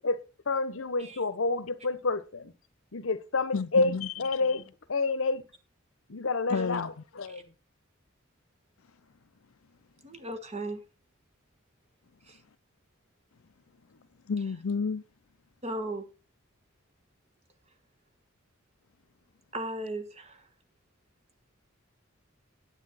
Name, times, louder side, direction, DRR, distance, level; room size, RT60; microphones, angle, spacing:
voice 1, 0.0-2.5 2.9-5.4 6.1-7.5, left 3 dB, 70° left, 0.9 m, -29 dB
voice 2, 3.5-4.1 6.5-6.9 14.3-15.0, left 5 dB, 85° left, 0.6 m, -30 dB
voice 3, 10.0-10.8 12.2-12.4 15.6-16.1 19.5-20.5, right 1 dB, 30° right, 1.5 m, -36 dB
9.6 x 9.1 x 4.1 m
head